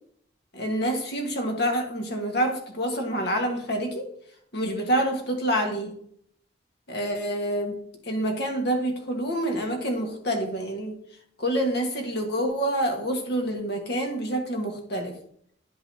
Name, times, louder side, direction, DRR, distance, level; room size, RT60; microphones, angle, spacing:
voice 1, 0.5-4.1 4.5-5.9 6.9-11.0 11.4-15.2, right 1 dB, 65° left, 3 dB, 1.5 m, -27 dB
10.5 x 5.4 x 2.8 m, 0.65 s
head